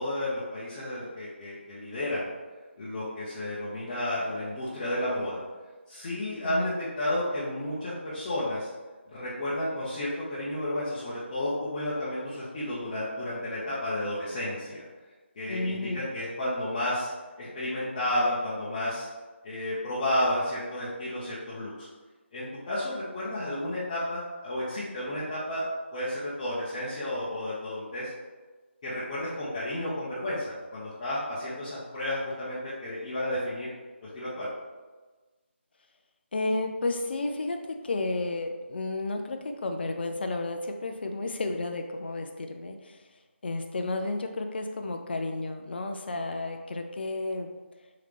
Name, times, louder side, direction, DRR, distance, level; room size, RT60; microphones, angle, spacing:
voice 1, 0.0-2.3 2.8-5.4 5.9-8.7 9.1-14.9 15.4-17.1 17.4-19.1 19.4-21.9 22.3-25.6 25.9-28.1 28.8-33.7 34.1-34.5, left 1 dB, 30° left, -10 dB, 0.8 m, -32 dB
voice 2, 15.5-16.0 36.3-43.0 43.4-47.5, left 2 dB, 55° left, 5 dB, 0.4 m, -32 dB
3.7 x 3.3 x 3.2 m, 1.3 s
figure-of-eight pair, 160°, 7 cm